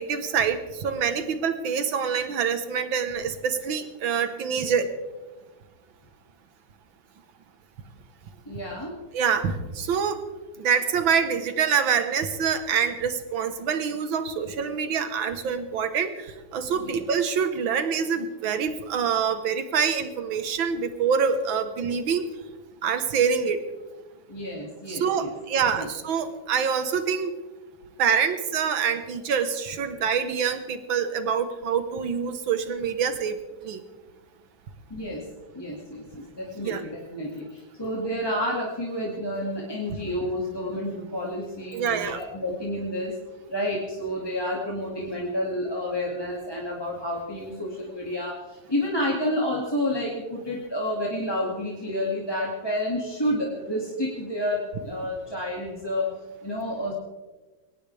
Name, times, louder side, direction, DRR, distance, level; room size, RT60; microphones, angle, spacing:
voice 1, 0.0-4.9 9.1-10.2 10.6-22.3 22.8-23.6 24.9-27.3 28.0-33.4 33.6-33.8 36.6-36.8 41.7-42.2, right 6 dB, 80° right, 9 dB, 2.0 m, -26 dB
voice 2, 8.5-8.9 16.7-17.0 24.3-25.3 25.7-25.8 34.9-35.2 35.5-43.2 43.5-56.1 56.4-56.9, left 1 dB, 10° left, -4 dB, 2.2 m, -30 dB
22.0 x 18.5 x 3.4 m, 1.2 s
omnidirectional pair, 2.1 m